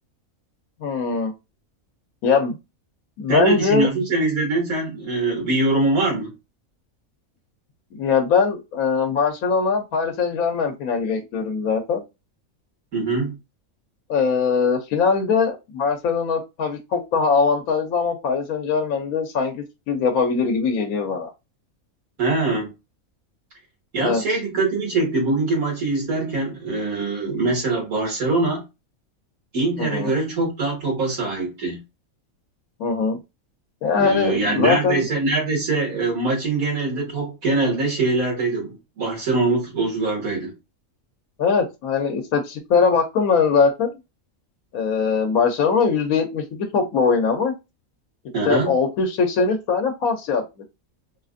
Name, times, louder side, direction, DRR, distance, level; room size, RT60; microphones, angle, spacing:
voice 1, 0.8-1.3 2.2-2.6 3.2-3.9 7.9-12.0 14.1-21.3 24.0-24.2 29.8-30.1 32.8-33.2 33.8-35.0 41.4-44.0 44.7-47.5 48.4-50.4, left 5 dB, 85° left, 1.2 m, -21 dB
voice 2, 3.3-6.3 12.9-13.3 22.2-22.7 23.9-28.6 29.5-31.8 33.9-40.5 48.3-48.7, right 3 dB, 85° right, 2.2 m, -23 dB
4.6 x 2.4 x 2.5 m
omnidirectional pair, 1.4 m